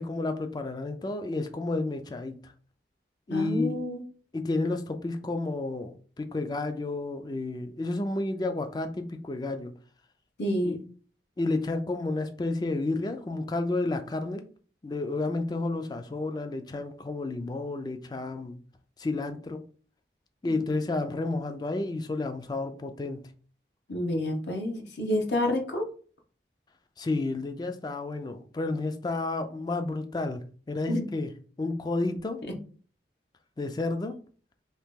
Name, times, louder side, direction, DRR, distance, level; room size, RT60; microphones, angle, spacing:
voice 1, 0.0-2.5 3.3-3.8 4.3-9.7 10.6-10.8 11.4-14.4 14.8-18.6 19.0-19.6 20.4-23.3 27.0-31.3 31.6-32.4 33.6-34.2, left 2 dB, 25° left, 0.3 m, -31 dB
voice 2, 3.3-4.0 10.4-10.8 23.9-25.9 30.9-31.0, left 1 dB, 75° left, 0.8 m, -29 dB
2.9 x 2.8 x 3.5 m
head